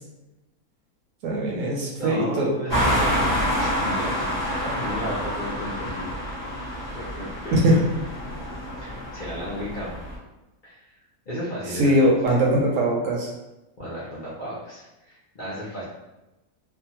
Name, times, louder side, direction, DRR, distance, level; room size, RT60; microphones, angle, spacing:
voice 1, 1.2-2.5 7.5-7.8 11.7-13.3, right 1 dB, 70° right, -2 dB, 0.9 m, -21 dB
voice 2, 2.0-4.2 4.6-6.1 6.9-7.8 8.8-10.0 10.6-10.9 11.3-11.9 13.8-15.8, equal, 55° left, -9 dB, 0.5 m, -34 dB
sound 1, 2.7-10.2, equal, 20° right, 0.7 m, -27 dB
2.6 x 2.1 x 2.8 m, 1.0 s
omnidirectional pair, 1.6 m